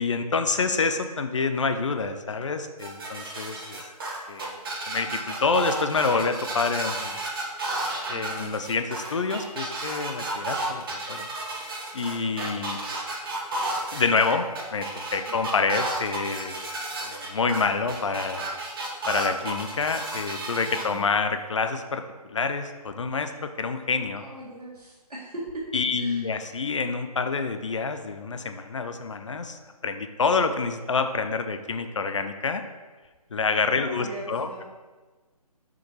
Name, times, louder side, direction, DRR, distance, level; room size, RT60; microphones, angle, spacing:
voice 1, 0.0-3.8 4.3-4.6 4.9-7.2 8.1-11.3 11.9-12.8 13.9-14.5 14.7-16.6 17.0-18.4 19.1-24.2 25.7-32.6 33.3-34.6, left 4 dB, 50° left, 8 dB, 0.7 m, -27 dB
sound 1, 2.8-20.8, right 2 dB, 35° right, 1.4 m, -32 dB
voice 2, 8.1-8.7 15.4-15.6 20.8-21.1 24.2-25.6 25.9-26.3 33.8-34.6, right 1 dB, 75° right, -5 dB, 2.1 m, -40 dB
6.7 x 5.1 x 4.5 m, 1.3 s
figure-of-eight pair, 145°, 20 cm